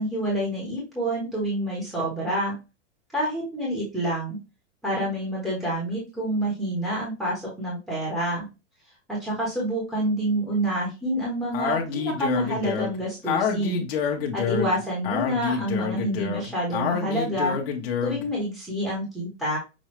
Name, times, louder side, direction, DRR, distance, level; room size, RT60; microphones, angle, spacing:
voice 1, 0.0-2.6 3.1-4.4 4.8-8.5 9.1-13.8 14.3-17.6 18.0-19.6, right 1 dB, ahead, -6 dB, 1.2 m, -28 dB
Speech, 11.5-18.3, left 6 dB, 55° left, 1.2 m, -28 dB
6.2 x 2.7 x 3.1 m, 0.28 s
supercardioid pair, 165°, 36 cm